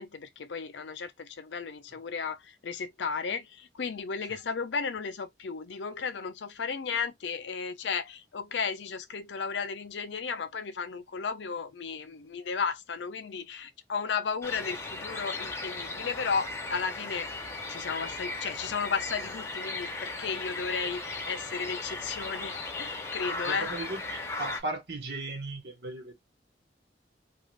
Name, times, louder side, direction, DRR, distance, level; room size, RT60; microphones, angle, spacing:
voice 1, 0.0-17.3 17.7-23.7, left 5 dB, 80° left, 0.5 m, -34 dB
sound 1, 14.4-24.6, left 2 dB, 15° left, 0.6 m, -37 dB
voice 2, 23.5-26.1, right 2 dB, 70° right, 1.1 m, -37 dB
2.5 x 2.4 x 3.1 m
head